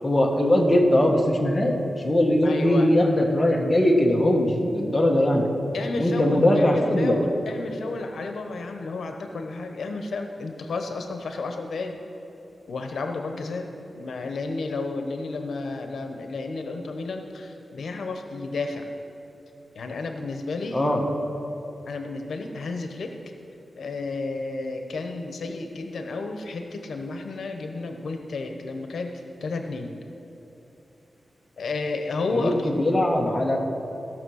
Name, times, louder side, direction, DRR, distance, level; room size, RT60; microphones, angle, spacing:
voice 1, 0.0-5.4 6.0-7.2 20.7-21.0 32.3-33.6, left 1 dB, 20° left, 0 dB, 1.3 m, -20 dB
voice 2, 2.4-2.9 5.7-12.0 12.7-18.9 19.7-20.9 21.9-23.1 23.8-29.9 31.6-32.7, left 3 dB, 90° left, 5 dB, 0.9 m, -32 dB
16.0 x 6.0 x 6.3 m, 3.0 s
wide cardioid pair, 135°, 0 cm